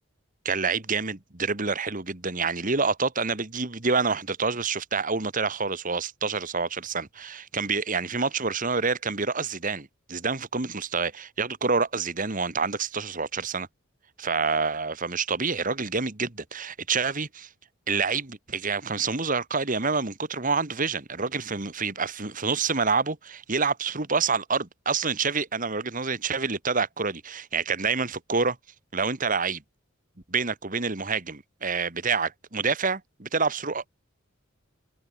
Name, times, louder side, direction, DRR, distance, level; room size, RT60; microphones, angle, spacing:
voice 1, 0.5-13.7 14.2-17.5 17.9-28.6 28.9-29.6 30.3-33.9, right 4 dB, 40° right, 1.9 m, -27 dB
head